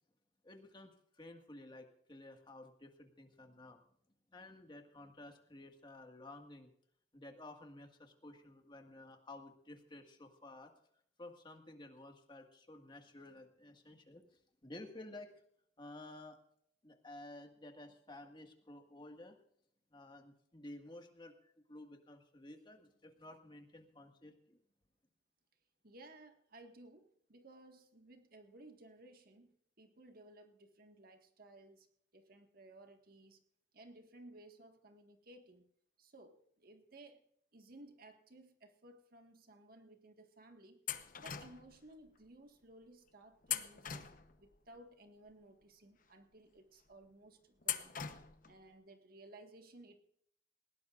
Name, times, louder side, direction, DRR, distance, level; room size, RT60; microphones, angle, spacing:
voice 1, 0.4-3.8 4.3-6.7 7.1-10.7 11.2-15.3 15.8-16.4 16.8-19.4 19.9-24.6, left 2 dB, 25° left, 4 dB, 1.8 m, -53 dB
voice 2, 25.8-33.4 33.7-35.7 36.0-37.2 37.5-40.8 41.2-44.1 44.4-47.9 48.4-50.0, right 2 dB, 55° right, 5 dB, 1.7 m, -58 dB
sound 1, 40.9-41.8 43.4-44.6 47.6-48.5, left 9 dB, 50° left, 0.9 m, -41 dB
20.0 x 17.0 x 2.5 m, 0.68 s
head